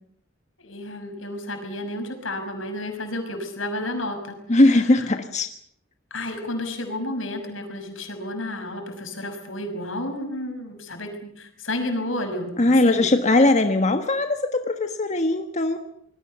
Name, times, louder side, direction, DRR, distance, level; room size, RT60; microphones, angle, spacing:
voice 1, 0.6-5.1 6.1-13.1, left 1 dB, 85° left, 5 dB, 6.1 m, -31 dB
voice 2, 4.5-5.5 12.6-15.8, left 2 dB, 35° left, 7 dB, 1.4 m, -19 dB
26.5 x 21.0 x 6.9 m, 0.68 s
head